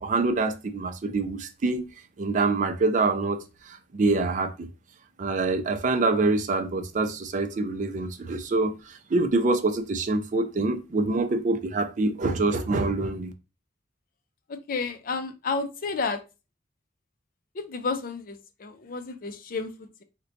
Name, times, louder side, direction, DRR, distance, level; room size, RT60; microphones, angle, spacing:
voice 1, 0.0-1.9 2.2-4.7 5.2-13.3, right 3 dB, 45° right, 0.4 m, -25 dB
voice 2, 14.5-16.2 17.5-20.0, left 4 dB, 50° left, 0.4 m, -31 dB
3.9 x 2.2 x 2.6 m
head